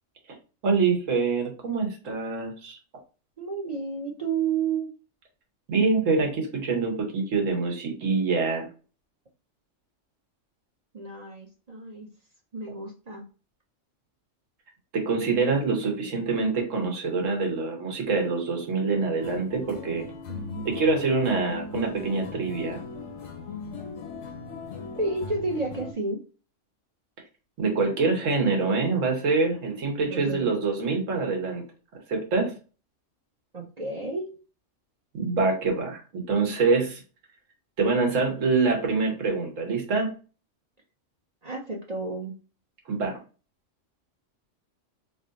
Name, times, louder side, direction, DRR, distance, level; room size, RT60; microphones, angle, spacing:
voice 1, 0.6-2.8 5.7-8.7 14.9-20.0 20.6-22.8 27.6-31.6 32.1-32.5 35.1-37.0 37.8-40.1 42.9-43.2, right 4 dB, 85° right, 2 dB, 1.4 m, -25 dB
voice 2, 3.4-4.9 10.9-12.1 12.5-13.2 20.3-20.9 25.0-26.2 30.1-30.5 33.5-34.3 41.4-42.3, right 4 dB, 40° right, 0 dB, 0.6 m, -31 dB
sound 1, 19.2-25.9, left 5 dB, 75° left, 1.1 m, -39 dB
3.0 x 2.5 x 3.9 m, 0.36 s
omnidirectional pair, 1.3 m